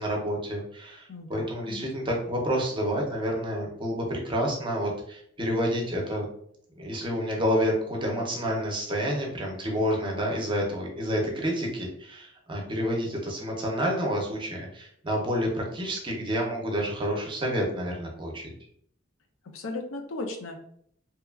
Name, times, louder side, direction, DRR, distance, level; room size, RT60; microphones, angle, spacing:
voice 1, 0.0-6.3 6.8-18.5, equal, 25° right, -1 dB, 0.6 m, -29 dB
voice 2, 1.1-1.9 19.5-20.6, left 2 dB, 80° left, 4 dB, 0.5 m, -36 dB
2.8 x 2.3 x 2.3 m, 0.66 s
head